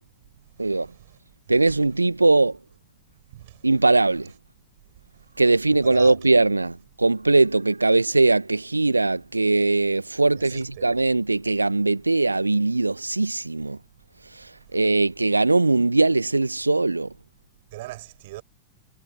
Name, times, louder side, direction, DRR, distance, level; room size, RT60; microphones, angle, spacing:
voice 1, 0.5-1.2 3.3-3.7 5.7-6.2 10.4-10.9 14.7-14.8 17.7-18.4, right 18 dB, 50° right, 7.7 m, -41 dB
voice 2, 1.5-2.6 3.6-4.3 5.4-13.8 14.4-17.1, right 2 dB, 80° right, 1.6 m, -20 dB
figure-of-eight pair, 90°, 0 cm